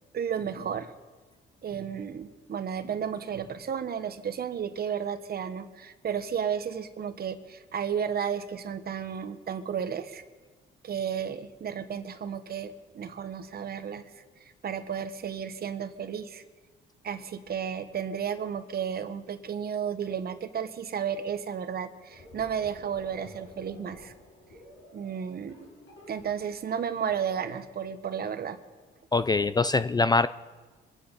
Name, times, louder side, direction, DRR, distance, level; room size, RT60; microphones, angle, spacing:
voice 1, 0.1-0.9 1.6-10.2 10.8-14.1 14.6-16.4 17.0-24.1 24.9-25.7 26.1-28.6, right 8 dB, 50° right, 10 dB, 1.1 m, -33 dB
sound 1, 22.1-27.2, left 1 dB, 75° left, 5.7 m, -51 dB
voice 2, 29.1-30.3, left 3 dB, 20° left, 14 dB, 0.4 m, -23 dB
24.0 x 9.8 x 5.3 m, 1.3 s
cardioid pair, 90°, 20 cm